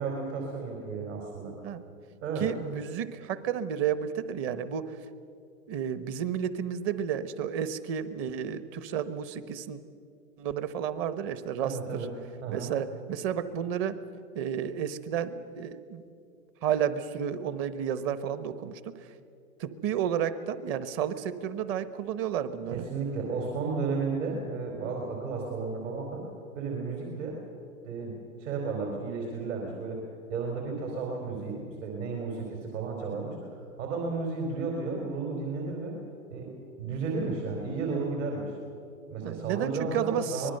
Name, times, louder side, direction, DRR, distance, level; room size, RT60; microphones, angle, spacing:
voice 1, 0.0-1.5 2.2-2.5 11.6-12.1 12.4-12.7 22.7-26.2 26.5-27.4 27.8-30.0 30.3-33.4 33.8-36.0 36.3-36.5 36.8-38.5 39.1-40.5, right 4 dB, 60° right, 0 dB, 4.5 m, -33 dB
voice 2, 2.4-5.0 5.7-9.8 10.4-12.1 12.5-14.0 14.3-16.0 16.6-19.1 19.6-22.8 39.2-40.5, right 8 dB, 30° right, 13 dB, 1.1 m, -31 dB
25.0 x 20.0 x 6.7 m, 2.5 s
hypercardioid pair, 125°, 42 cm